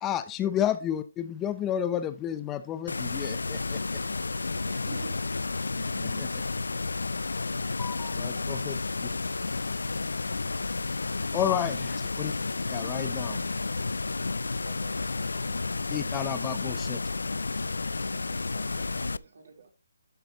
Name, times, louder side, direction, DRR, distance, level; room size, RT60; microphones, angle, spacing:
voice 1, 0.0-4.0 6.0-6.4 7.6-9.1 11.3-12.3 12.7-13.5 15.9-17.0, left 10 dB, 15° left, 12 dB, 0.6 m, -32 dB
sound 1, 2.9-19.2, left 3 dB, 85° left, 0.4 m, -31 dB
voice 2, 4.7-5.4 18.7-19.7, right 3 dB, 65° right, 2 dB, 4.1 m, -46 dB
voice 3, 5.7-6.4 14.4-15.4 18.1-18.6 18.9-19.0, right 10 dB, 35° right, 14 dB, 0.5 m, -51 dB
11.5 x 8.3 x 3.0 m, 0.28 s
hypercardioid pair, 155°, 0 cm